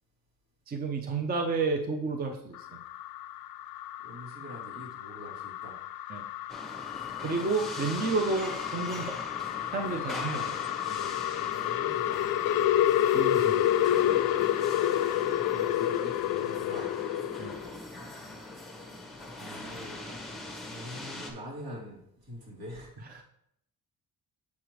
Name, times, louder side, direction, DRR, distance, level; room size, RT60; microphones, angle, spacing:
voice 1, 0.7-2.8 6.1-6.2 7.2-9.2 9.7-10.6 10.9-11.2 13.1-13.7 17.4-17.5 23.1-23.2, right 4 dB, 25° right, 4 dB, 0.6 m, -31 dB
sound 1, 2.5-17.7, left 12 dB, 75° left, 0.5 m, -29 dB
voice 2, 4.0-5.8 11.4-13.0 13.4-14.0 15.5-16.9 19.0-20.1 20.7-23.2, equal, 80° right, -4 dB, 3.1 m, -45 dB
sound 2, 6.5-21.3, left 1 dB, ahead, 0.9 m, -42 dB
7.1 x 6.5 x 3.0 m, 0.74 s
cardioid pair, 160°, 36 cm